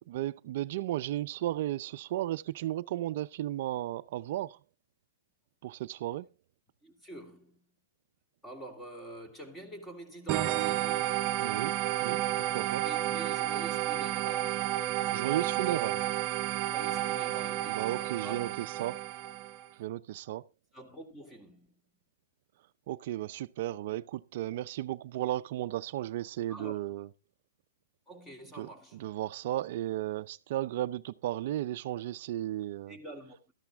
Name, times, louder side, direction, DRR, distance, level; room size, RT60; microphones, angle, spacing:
voice 1, 0.1-4.6 5.6-6.3 11.4-12.8 15.1-16.0 17.7-19.0 19.8-20.4 22.9-27.1 28.6-33.0, right 14 dB, 55° right, 0.5 m, -34 dB
voice 2, 6.8-7.6 8.4-11.0 12.8-14.7 16.7-18.5 20.7-21.7 26.5-27.0 28.1-29.0 32.9-33.4, right 1 dB, 10° left, 2.6 m, -47 dB
sound 1, 10.3-19.7, right 13 dB, 35° right, 0.9 m, -31 dB
13.5 x 11.5 x 3.5 m
hypercardioid pair, 140°, 0 cm